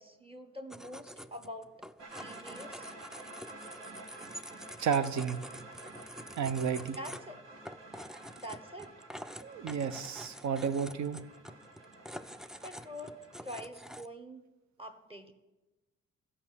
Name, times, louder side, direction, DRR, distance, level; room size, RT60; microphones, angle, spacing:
voice 1, 0.0-1.7 2.2-2.9 6.9-7.4 8.4-8.9 12.6-14.4 14.8-15.3, equal, 20° right, 7 dB, 1.3 m, -45 dB
sound 1, 0.7-14.1, equal, ahead, 0.3 m, -48 dB
sound 2, 2.0-13.4, right 2 dB, 85° right, 2.3 m, -51 dB
voice 2, 4.8-5.4 6.4-7.0 9.4-11.2, right 7 dB, 70° right, 12 dB, 0.9 m, -32 dB
13.5 x 5.6 x 7.0 m, 1.1 s
cardioid pair, 90°, 30 cm